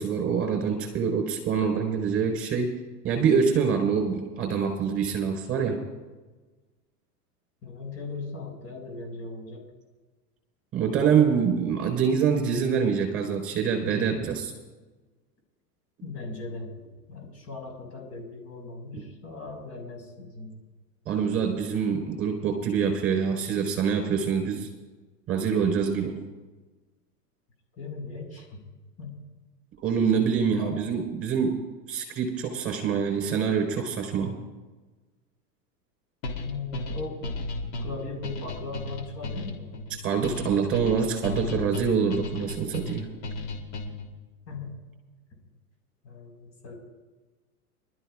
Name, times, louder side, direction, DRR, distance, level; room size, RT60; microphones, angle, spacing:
voice 1, 0.0-2.7 3.0-5.8 10.7-14.5 21.1-24.7 25.3-26.2 29.8-31.6 31.9-34.3 40.0-43.1, right 6 dB, 25° right, 3 dB, 4.5 m, -25 dB
voice 2, 7.6-9.7 16.0-20.5 26.0-26.1 27.8-28.6 29.0-29.2 30.5-30.7 36.3-40.0 44.5-44.8 46.0-46.7, left 3 dB, 30° left, 1 dB, 5.0 m, -39 dB
sound 1, 36.2-44.1, left 2 dB, 50° left, 3.2 m, -35 dB
26.0 x 13.0 x 2.5 m, 1.3 s
hypercardioid pair, 105°, 49 cm